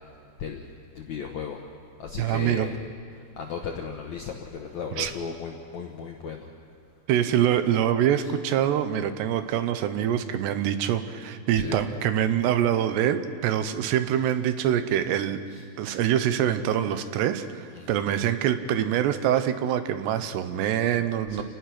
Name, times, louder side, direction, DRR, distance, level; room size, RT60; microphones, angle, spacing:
voice 1, 0.9-1.6 2.0-2.8 3.4-6.5 8.2-8.3 11.5-11.8 15.5-15.6 17.7-17.9 21.3-21.4, left 6 dB, 70° left, 2 dB, 1.7 m, -35 dB
voice 2, 2.2-2.7 5.0-5.1 7.1-15.4 15.8-21.4, right 10 dB, 80° right, 10 dB, 3.0 m, -25 dB
29.5 x 18.5 x 6.0 m, 2.3 s
omnidirectional pair, 4.9 m